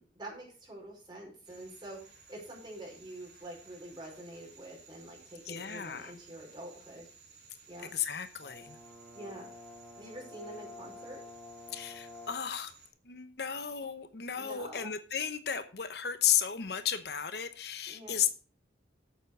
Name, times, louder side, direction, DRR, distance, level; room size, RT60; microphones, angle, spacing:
voice 1, 0.0-7.1 7.7-7.9 9.1-9.5 10.0-11.2 14.4-14.9 17.9-18.2, right 1 dB, 25° right, 5.1 m, -46 dB
sound 1, 1.4-12.9, right 5 dB, 70° right, 3.4 m, -58 dB
voice 2, 5.4-6.1 7.8-8.8 11.7-12.7 13.0-18.3, left 9 dB, 60° left, 0.9 m, -33 dB
Brass instrument, 8.4-12.6, left 3 dB, 5° left, 2.8 m, -49 dB
8.2 x 7.3 x 6.6 m
head